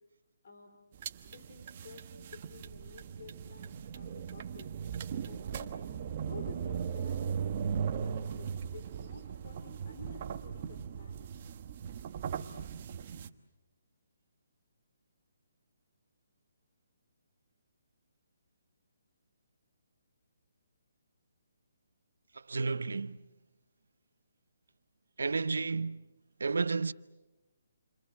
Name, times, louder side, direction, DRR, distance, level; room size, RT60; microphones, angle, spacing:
voice 1, 0.4-0.8 1.2-4.7 5.2-5.8 6.2-11.3, left 5 dB, 50° left, 4.1 m, -52 dB
sound 1, 0.9-13.3, right 7 dB, 35° right, 1.2 m, -38 dB
voice 2, 22.5-23.2 25.2-26.1 26.4-26.9, right 4 dB, 90° right, 0.9 m, -31 dB
29.0 x 25.0 x 8.0 m
hypercardioid pair, 165°, 0 cm